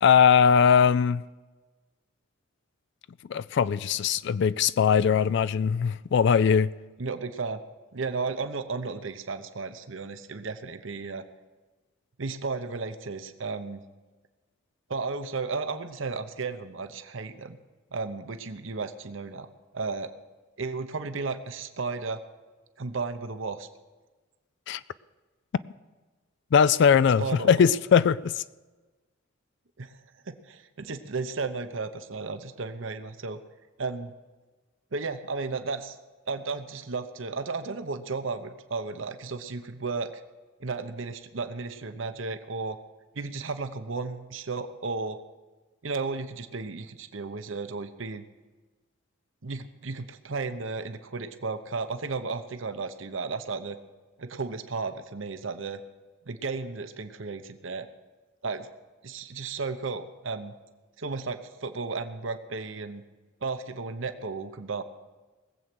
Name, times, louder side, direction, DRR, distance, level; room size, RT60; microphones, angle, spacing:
voice 1, 0.0-1.2 3.3-6.7 24.7-24.8 26.5-28.4, left 7 dB, 60° left, 0.3 m, -20 dB
voice 2, 7.0-7.6 7.9-11.2 12.2-13.8 14.9-17.6 17.9-19.5 19.7-20.1 20.6-22.2 22.8-23.7 27.0-27.6 29.8-29.9 30.3-33.4 33.8-34.1 34.9-36.0 36.3-40.1 40.6-42.8 43.1-45.2 45.8-48.2 49.4-53.8 54.2-55.8 56.3-57.9 58.4-58.7 59.0-60.5 61.0-63.0 63.4-64.8, right 4 dB, 65° right, 0.9 m, -34 dB
19.5 x 7.9 x 6.1 m
head